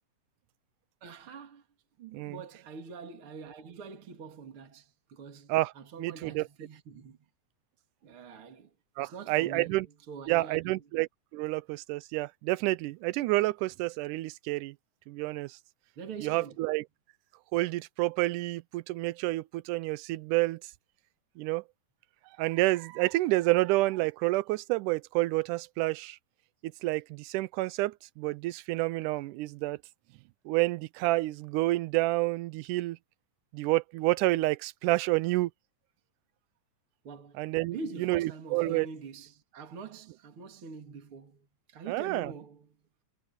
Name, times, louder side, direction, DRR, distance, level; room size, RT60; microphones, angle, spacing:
voice 1, 1.0-1.6 2.0-7.2 8.0-8.7 9.0-10.8 16.0-16.7 37.0-42.7, right 5 dB, 45° right, 3.2 m, -44 dB
voice 2, 6.0-6.5 9.0-9.9 10.3-11.1 11.3-14.8 15.1-15.6 16.2-16.8 17.5-20.6 21.4-21.6 22.4-26.2 26.6-29.8 30.5-33.0 33.5-35.5 37.4-38.9 41.9-42.3, right 19 dB, 90° right, 2.1 m, -29 dB
omnidirectional pair, 3.5 m